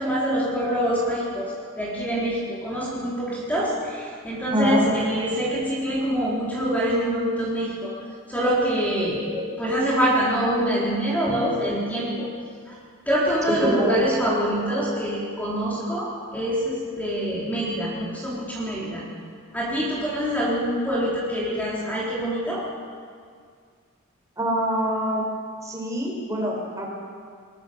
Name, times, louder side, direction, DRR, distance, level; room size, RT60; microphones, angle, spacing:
voice 1, 0.0-7.9 8.3-12.3 12.7-12.8 13.1-19.0 19.5-22.6, equal, 10° left, -6 dB, 3.8 m, -25 dB
voice 2, 4.5-4.8 13.6-14.0 24.4-25.3 25.6-26.9, equal, 15° right, -1 dB, 4.8 m, -25 dB
22.5 x 21.5 x 6.8 m, 2.1 s
head